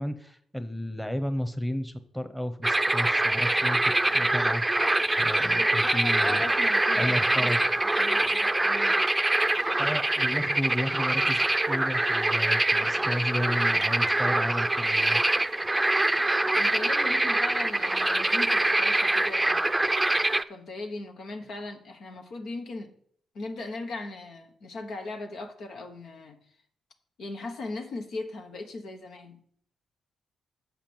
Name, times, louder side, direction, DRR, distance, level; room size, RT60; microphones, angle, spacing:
voice 1, 0.0-4.7 5.1-6.4 7.0-7.8 9.8-15.2, equal, 5° left, 1.2 m, -33 dB
sound 1, 2.6-20.4, right 2 dB, 15° right, 0.6 m, -24 dB
voice 2, 5.4-7.5 7.8-9.0 16.5-19.9 20.5-22.9 23.3-26.4 27.2-29.4, left 3 dB, 65° left, 1.3 m, -38 dB
7.3 x 5.8 x 7.1 m
hypercardioid pair, 40°, 0 cm